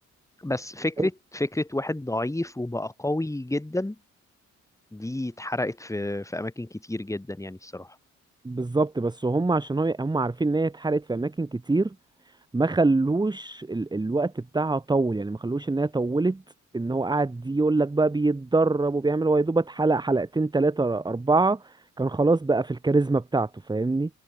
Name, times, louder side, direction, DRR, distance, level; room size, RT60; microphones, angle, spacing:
voice 1, 0.4-4.0 4.9-8.0, left 1 dB, 10° left, 7.3 m, -30 dB
voice 2, 8.4-11.9 12.5-16.4 16.7-24.1, right 3 dB, 15° right, 1.4 m, -24 dB
cardioid pair, 90°, 30 cm